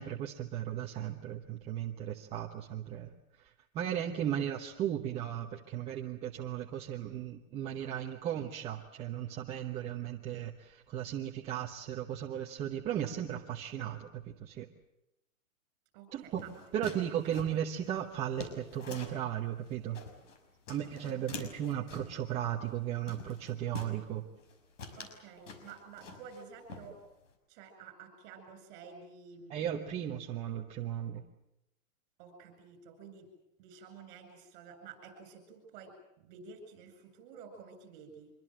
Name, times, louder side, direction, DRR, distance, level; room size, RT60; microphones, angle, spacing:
voice 1, 0.0-3.1 3.4-14.7 16.1-16.4 16.7-20.0 20.7-24.2 29.5-31.2, right 10 dB, 15° right, 1 dB, 1.0 m, -36 dB
voice 2, 15.9-16.5 17.3-17.4 25.0-27.0 27.5-29.8 32.2-33.3 33.6-38.3, right 5 dB, 35° right, 7 dB, 8.0 m, -51 dB
sound 1, 16.3-19.3 19.7-20.4 20.7-22.2 22.7-22.8 23.1-24.0 24.4-24.5 24.8-26.4 26.7-27.3, left 4 dB, 65° left, 6.0 m, -46 dB
25.5 x 23.0 x 7.7 m, 0.85 s
hypercardioid pair, 160°, 41 cm